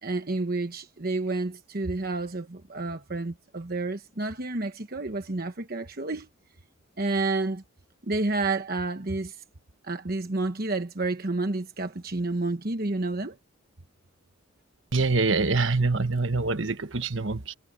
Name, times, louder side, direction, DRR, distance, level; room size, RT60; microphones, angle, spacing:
voice 1, 0.0-6.3 7.0-7.6 8.0-9.4 9.8-13.4, right 2 dB, 45° right, 1.1 m, -30 dB
voice 2, 14.9-17.5, right 3 dB, 65° right, 1.3 m, -25 dB
head